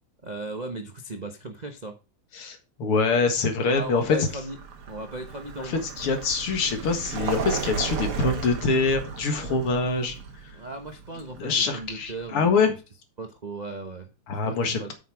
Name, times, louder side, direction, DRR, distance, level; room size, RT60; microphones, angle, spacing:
voice 1, 0.2-2.0 3.7-4.6 4.9-5.8 10.5-12.7 13.2-14.1 14.4-14.9, right 2 dB, 55° right, 0.4 m, -37 dB
voice 2, 2.3-4.2 5.6-10.2 11.4-12.7 14.3-14.9, left 4 dB, 85° left, 2.6 m, -24 dB
Vehicle, 3.7-12.5, right 5 dB, 80° right, 2.5 m, -35 dB
8.1 x 6.7 x 4.9 m
omnidirectional pair, 2.4 m